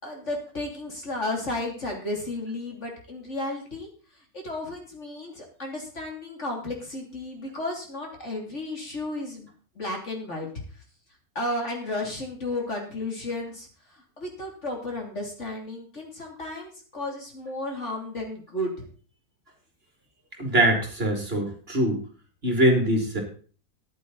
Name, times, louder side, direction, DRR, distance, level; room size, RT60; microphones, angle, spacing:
voice 1, 0.0-9.5 9.7-10.8 11.3-18.9, left 1 dB, 45° left, 1 dB, 3.4 m, -33 dB
voice 2, 20.4-22.0 22.4-23.2, right 1 dB, 35° right, 2 dB, 3.1 m, -23 dB
14.0 x 10.5 x 4.1 m, 0.41 s
omnidirectional pair, 1.7 m